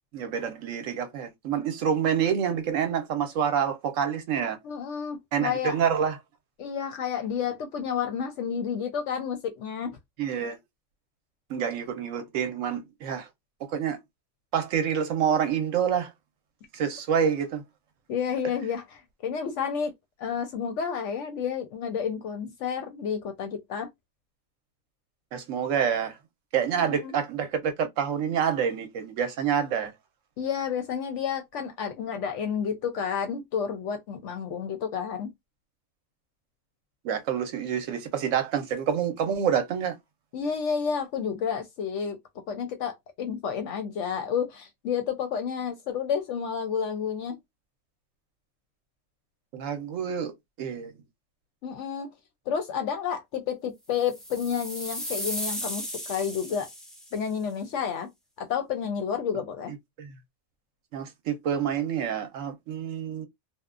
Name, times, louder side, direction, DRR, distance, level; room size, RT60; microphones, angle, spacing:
voice 1, 0.1-4.6 5.3-6.2 10.2-10.6 11.5-13.3 13.6-14.0 14.5-16.1 16.7-17.6 25.3-26.2 26.5-29.9 37.0-39.9 49.5-50.3 50.6-51.0 60.0-60.1 60.9-63.3, right 8 dB, 70° right, 0.9 m, -27 dB
voice 2, 4.6-5.8 6.6-10.0 18.1-19.9 20.2-23.9 26.9-27.1 30.4-35.3 40.3-42.2 42.5-47.4 51.6-52.1 52.5-56.7 57.1-58.1 58.4-59.7, left 7 dB, 70° left, 0.8 m, -30 dB
sound 1, 54.0-57.2, equal, ahead, 0.3 m, -35 dB
2.8 x 2.1 x 2.4 m
omnidirectional pair, 1.5 m